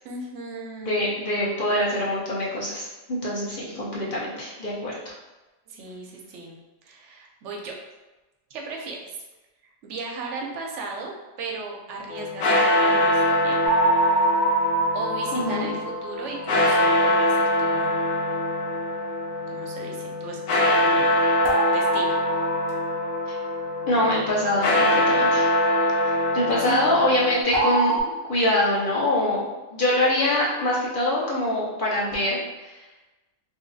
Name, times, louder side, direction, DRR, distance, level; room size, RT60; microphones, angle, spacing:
voice 1, 0.0-1.1 5.7-6.6 6.8-7.8 8.5-9.1 9.8-13.6 14.9-18.0 19.5-20.4 20.8-21.2 21.7-22.2 26.0-26.3 26.6-26.8, right 4 dB, 80° right, 0 dB, 0.9 m, -36 dB
voice 2, 0.8-5.1 15.3-15.7 23.8-25.5 26.3-32.7, left 1 dB, 50° left, -7 dB, 0.9 m, -24 dB
sound 1, 12.1-27.4, left 1 dB, 80° left, 0.9 m, -23 dB
sound 2, 13.6-16.6 21.4-23.6 27.5-28.0, right 2 dB, 30° right, 0.6 m, -25 dB
3.1 x 2.8 x 2.6 m, 1.1 s
omnidirectional pair, 1.2 m